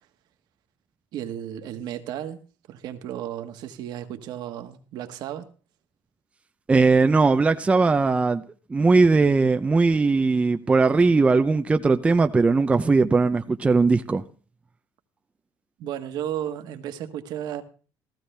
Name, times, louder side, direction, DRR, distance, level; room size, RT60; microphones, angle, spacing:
voice 1, 1.1-2.4 2.7-5.5 15.8-17.6, right 11 dB, 60° right, 1.4 m, -33 dB
voice 2, 6.7-8.4 8.7-14.2, right 4 dB, 15° right, 0.5 m, -19 dB
15.5 x 14.0 x 3.3 m
cardioid pair, 130°, 8 cm